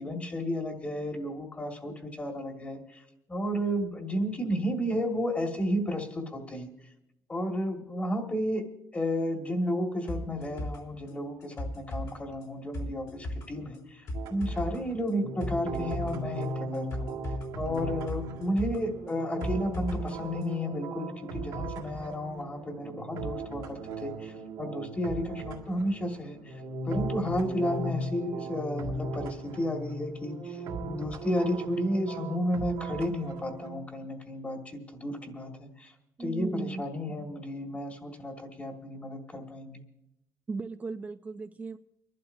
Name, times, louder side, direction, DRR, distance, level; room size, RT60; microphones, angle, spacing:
voice 1, 0.0-3.0 3.3-6.7 7.3-8.6 8.9-17.2 17.6-26.6 26.9-35.9 36.2-39.8, equal, 20° left, 3 dB, 1.8 m, -32 dB
sound 1, 10.1-20.1 20.4-20.5, left 1 dB, 60° left, 3.6 m, -38 dB
sound 2, 14.1-33.8, right 2 dB, 85° right, 2.0 m, -37 dB
voice 2, 36.2-36.8 40.5-41.8, right 4 dB, 25° right, 7 dB, 0.5 m, -36 dB
30.0 x 11.5 x 2.7 m, 0.85 s
cardioid pair, 115°, 7 cm